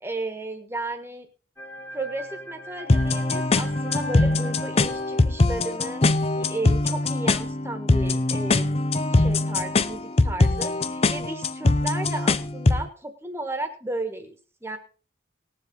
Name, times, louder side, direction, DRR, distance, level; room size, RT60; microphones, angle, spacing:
voice 1, 0.0-1.3 1.9-8.7 9.1-14.8, right 2 dB, 15° right, 7 dB, 1.6 m, -34 dB
sound 1, 1.6-6.0, equal, 10° left, 1.1 m, -41 dB
sound 2, 2.9-12.9, left 2 dB, 30° left, 0.6 m, -22 dB
19.5 x 7.5 x 4.0 m, 0.38 s
head